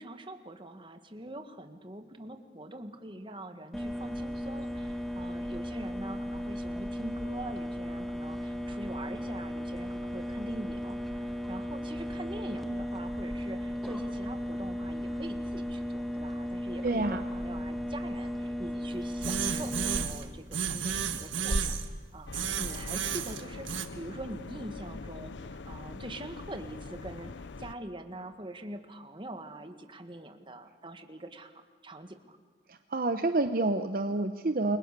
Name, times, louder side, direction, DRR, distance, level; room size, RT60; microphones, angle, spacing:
voice 1, 0.0-21.7 22.1-27.3 27.6-32.4, right 1 dB, 25° right, 7 dB, 1.7 m, -44 dB
sound 1, 3.7-20.0, equal, ahead, 1.7 m, -35 dB
voice 2, 16.8-17.2 32.7-34.8, right 2 dB, 50° right, 8 dB, 0.9 m, -28 dB
sound 2, 19.2-20.2 20.5-21.9 22.3-23.9, right 6 dB, 90° right, 1.7 m, -32 dB
sound 3, 22.3-27.7, left 3 dB, 75° left, 0.7 m, -43 dB
29.5 x 22.5 x 6.8 m, 1.5 s
head